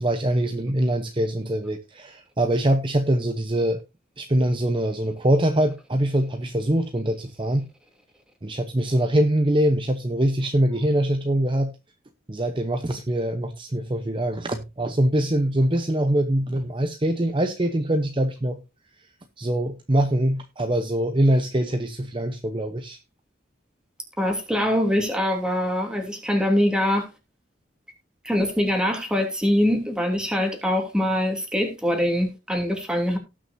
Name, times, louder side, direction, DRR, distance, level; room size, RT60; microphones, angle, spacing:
voice 1, 0.0-3.8 4.2-7.7 8.4-11.7 12.3-18.6 19.4-23.0, right 1 dB, 25° right, 0.8 m, -23 dB
voice 2, 24.2-27.1 28.2-33.2, equal, 5° right, 2.9 m, -23 dB
18.5 x 6.3 x 2.7 m
head